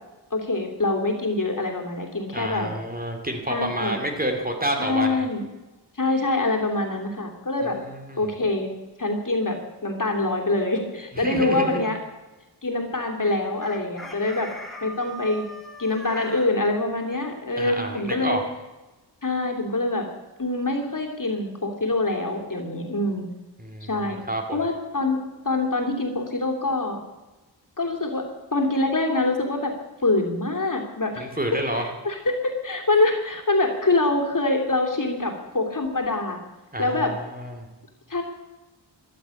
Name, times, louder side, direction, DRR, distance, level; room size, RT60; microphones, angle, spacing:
voice 1, 0.3-2.7 3.5-4.0 4.8-5.4 6.0-7.8 8.2-8.7 9.0-12.0 12.6-14.5 14.8-15.4 15.8-18.4 19.2-20.1 20.4-23.3 23.8-24.2 24.5-25.2 25.4-27.0 27.8-28.3 28.5-29.7 30.0-31.3 31.8-36.4 36.8-37.1 38.1-38.2, left 2 dB, 45° left, 2 dB, 2.9 m, -25 dB
voice 2, 2.3-5.3 7.6-8.3 11.1-11.8 17.6-18.4 23.6-24.6 31.2-31.8 36.7-37.7, right 1 dB, 20° right, 3 dB, 2.6 m, -29 dB
Chicken rooster, 13.6-16.5, equal, ahead, 3.0 m, -40 dB
14.0 x 12.0 x 8.4 m, 1.1 s
wide cardioid pair, 105°, 44 cm